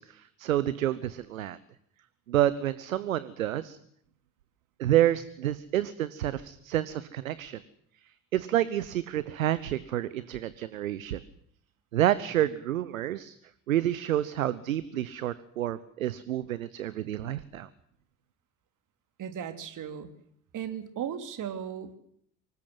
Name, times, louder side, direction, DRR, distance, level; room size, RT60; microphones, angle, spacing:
voice 1, 0.0-1.6 2.3-3.8 4.8-7.6 8.3-11.2 11.9-13.3 13.7-17.7, right 12 dB, 80° right, 17 dB, 1.0 m, -29 dB
voice 2, 19.2-20.1 20.5-21.9, right 9 dB, 50° right, 9 dB, 3.3 m, -36 dB
25.0 x 20.0 x 7.9 m, 0.67 s
figure-of-eight pair, 55°, 41 cm